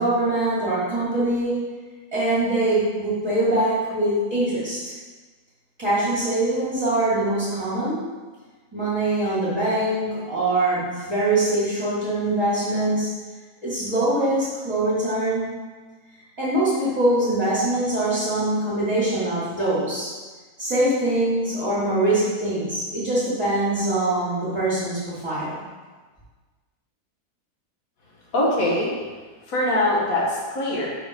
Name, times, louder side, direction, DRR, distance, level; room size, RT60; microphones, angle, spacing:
voice 1, 0.0-1.6 2.1-4.9 5.8-8.0 8.7-13.1 13.6-15.4 16.4-20.1 20.6-25.5, right 1 dB, 15° right, -12 dB, 2.0 m, -23 dB
voice 2, 28.3-28.9 29.5-30.9, left 1 dB, 60° left, -4 dB, 1.8 m, -22 dB
5.5 x 4.1 x 5.2 m, 1.4 s
omnidirectional pair, 1.7 m